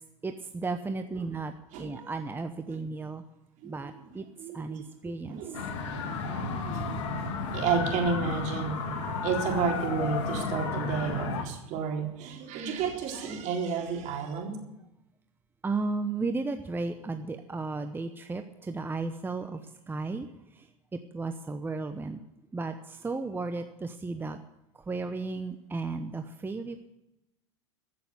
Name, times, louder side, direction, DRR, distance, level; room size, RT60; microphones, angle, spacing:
voice 1, 0.2-1.5 1.8-3.2 3.6-4.3 4.5-5.4 15.6-19.6 19.9-20.3 20.6-20.7 20.9-22.2 22.5-24.4 24.9-26.9, right 3 dB, 15° right, 7 dB, 0.9 m, -34 dB
voice 2, 1.7-2.1 2.7-2.8 3.6-7.3 7.5-8.8 9.2-14.6, right 6 dB, 50° right, 0 dB, 3.9 m, -32 dB
sound 1, 5.5-11.4, left 4 dB, 70° left, 2.3 m, -32 dB
15.0 x 6.9 x 9.7 m, 0.92 s
hypercardioid pair, 95°, 16 cm